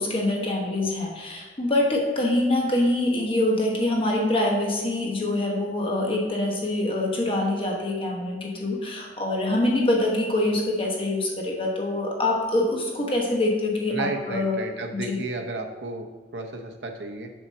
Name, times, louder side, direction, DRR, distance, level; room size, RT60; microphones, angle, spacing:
voice 1, 0.0-14.6 14.9-15.2, left 1 dB, 30° left, -1 dB, 1.0 m, -25 dB
voice 2, 13.9-17.3, right 2 dB, 80° right, 4 dB, 0.9 m, -33 dB
7.2 x 6.0 x 4.1 m, 1.3 s
head